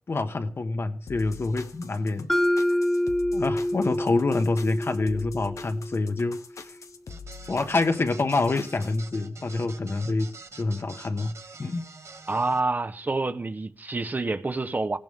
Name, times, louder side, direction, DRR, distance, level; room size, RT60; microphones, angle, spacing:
voice 1, 0.1-2.3 3.3-6.7 7.5-11.8, left 3 dB, 50° left, 1.4 m, -27 dB
sound 1, 1.1-9.0, left 5 dB, 80° left, 1.2 m, -44 dB
Mallet percussion, 2.3-6.3, left 1 dB, 5° left, 0.8 m, -27 dB
sound 2, 7.1-12.6, right 4 dB, 60° right, 1.2 m, -46 dB
voice 2, 12.3-15.0, right 3 dB, 35° right, 1.0 m, -27 dB
18.5 x 17.0 x 3.7 m
wide cardioid pair, 100°, 5 cm